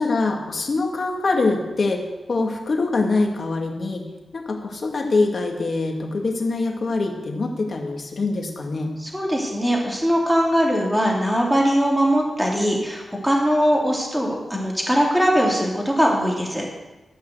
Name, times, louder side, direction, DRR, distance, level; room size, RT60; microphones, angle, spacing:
voice 1, 0.0-2.0 2.3-4.0 4.3-8.9, left 3 dB, 60° left, 1 dB, 2.2 m, -24 dB
voice 2, 9.0-16.7, equal, ahead, -2 dB, 2.9 m, -21 dB
14.0 x 5.7 x 8.0 m, 1.1 s
cardioid pair, 80°, 0 cm